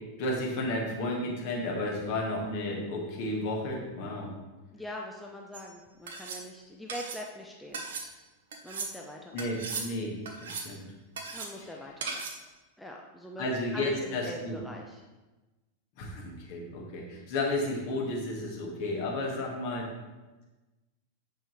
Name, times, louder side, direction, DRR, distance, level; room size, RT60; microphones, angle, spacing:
voice 1, 0.2-4.3 9.3-10.2 10.4-10.8 13.4-14.6 16.0-19.9, left 1 dB, 45° left, -2 dB, 1.6 m, -32 dB
voice 2, 4.7-7.8 8.6-9.5 11.3-12.2 12.8-13.4 13.7-15.0, left 1 dB, 5° left, -1 dB, 0.6 m, -43 dB
sound 1, 5.5-5.7 6.1-6.4 6.9-7.2 7.7-8.1 8.5-8.9 9.4-9.9 10.3-10.7 11.2-11.5 12.0-12.4, right 4 dB, 60° right, 0.8 m, -37 dB
7.3 x 5.5 x 3.1 m, 1.2 s
figure-of-eight pair, 90°, 0 cm